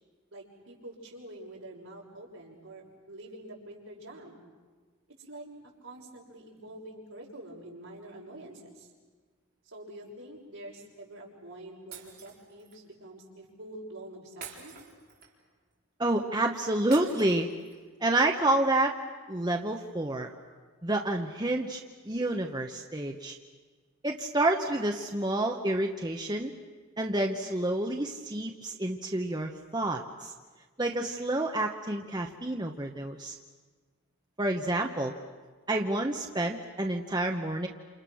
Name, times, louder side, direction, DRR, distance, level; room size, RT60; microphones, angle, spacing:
voice 1, 0.3-4.4 5.2-8.9 9.6-14.7, right 1 dB, 70° right, -3 dB, 6.3 m, -46 dB
Shatter, 11.9-12.8 14.4-15.5 16.9-17.9, right 6 dB, 45° right, 4.5 m, -47 dB
voice 2, 16.0-17.5 18.0-19.0 19.3-20.3 20.8-21.8 22.1-23.4 24.0-26.5 27.0-30.3 30.8-33.4 34.4-35.1 35.7-37.7, right 1 dB, 20° right, 2 dB, 1.1 m, -29 dB
28.5 x 28.0 x 6.3 m, 1.4 s
head